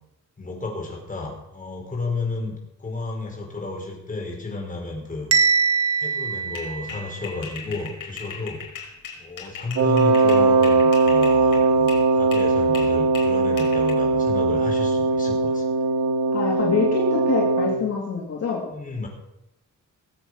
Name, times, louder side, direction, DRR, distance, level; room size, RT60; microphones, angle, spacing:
voice 1, 0.4-5.3 6.0-8.6 9.2-15.6 18.7-19.1, left 3 dB, 25° left, -1 dB, 5.2 m, -32 dB
Bell, 5.3-7.4, right 5 dB, 50° right, 1.3 m, -22 dB
sound 1, 6.5-12.1 12.3-13.9, left 7 dB, 85° left, 4.8 m, -38 dB
Wind instrument woodwind instrument, 9.8-17.8, right 4 dB, 80° right, 2.8 m, -20 dB
voice 2, 16.3-18.7, left 5 dB, 55° left, -2 dB, 2.5 m, -25 dB
19.5 x 8.1 x 6.5 m, 0.87 s
cardioid pair, 125°, 31 cm